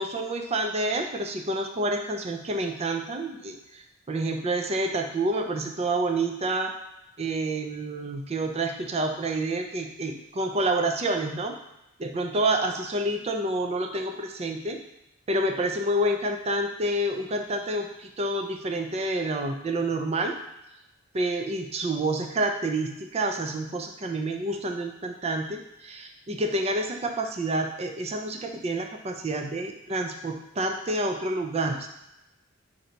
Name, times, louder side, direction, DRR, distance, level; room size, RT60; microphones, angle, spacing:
voice 1, 0.0-6.7 7.2-11.5 12.0-14.8 15.3-20.4 21.1-31.9, right 2 dB, 30° right, 4 dB, 0.4 m, -28 dB
3.9 x 2.7 x 4.4 m, 0.92 s
head